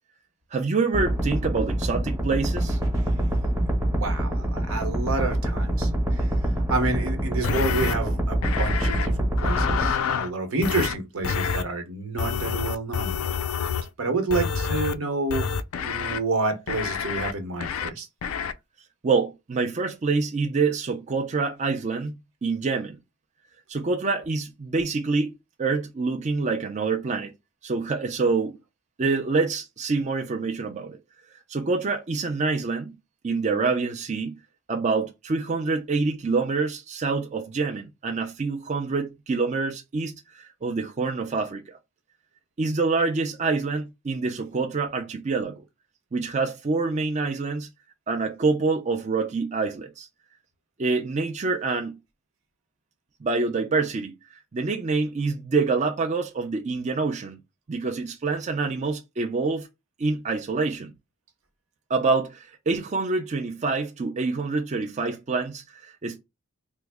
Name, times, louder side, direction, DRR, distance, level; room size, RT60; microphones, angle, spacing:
voice 1, 0.5-2.8 19.0-22.1 22.4-23.0 23.7-25.3 25.6-27.3 27.6-28.6 29.0-31.0 31.5-32.9 33.2-34.4 34.7-41.8 42.6-45.6 46.1-47.7 48.1-50.1 50.8-52.0 53.2-54.1 54.5-57.4 57.7-59.7 60.0-60.9 61.9-66.2, right 4 dB, 35° right, 0.4 m, -26 dB
sound 1, 0.9-9.9, right 1 dB, 15° right, 0.9 m, -25 dB
voice 2, 4.0-6.3 6.7-13.1 14.0-15.5 15.8-18.1, right 2 dB, 80° right, 1.0 m, -29 dB
sound 2, 7.4-8.0 8.4-9.1 9.4-10.3 10.6-10.9 11.2-11.6 12.2-13.9 14.3-14.9 15.3-16.2 16.7-17.3 17.6-17.9 18.2-18.5, left 7 dB, 85° left, 0.4 m, -27 dB
3.4 x 2.1 x 3.4 m
head